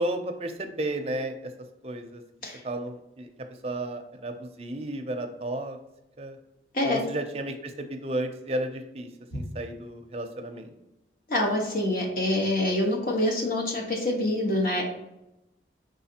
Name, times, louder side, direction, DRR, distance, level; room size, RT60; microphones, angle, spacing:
voice 1, 0.0-1.5 1.8-2.2 2.6-3.3 3.6-5.8 6.2-6.4 6.9-10.7, right 1 dB, 35° right, 5 dB, 0.5 m, -33 dB
voice 2, 11.3-14.8, left 1 dB, 50° left, -1 dB, 1.1 m, -26 dB
4.8 x 3.8 x 2.8 m, 0.91 s
head